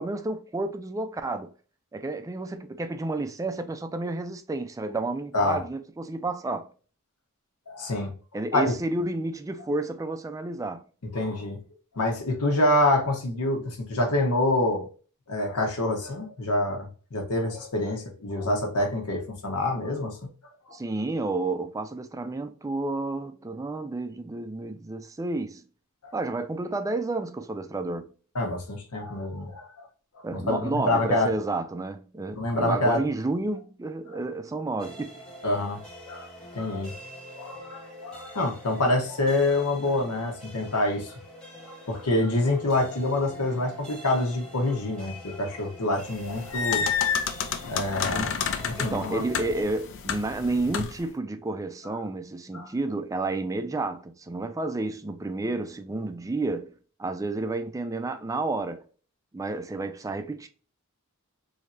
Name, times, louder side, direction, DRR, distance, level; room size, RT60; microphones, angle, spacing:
voice 1, 0.0-1.5 1.9-6.7 8.3-10.8 20.7-25.6 26.1-28.1 30.2-35.1 48.1-48.4 48.8-56.7 57.0-58.8 59.3-60.5, right 2 dB, 15° right, 0.3 m, -31 dB
voice 2, 5.3-5.6 7.7-8.1 8.5-8.7 11.1-11.6 11.9-14.9 15.3-20.2 20.7-20.8 28.3-29.9 30.3-31.3 32.4-33.0 35.4-36.3 36.5-36.9 37.4-41.1 41.6-47.0 47.7-48.3 48.6-49.2 52.5-52.7, left 2 dB, 85° left, 1.1 m, -26 dB
sound 1, 34.8-49.6, equal, 5° left, 1.1 m, -45 dB
sound 2, 46.1-51.1, left 7 dB, 60° left, 0.4 m, -30 dB
3.3 x 2.8 x 2.5 m
head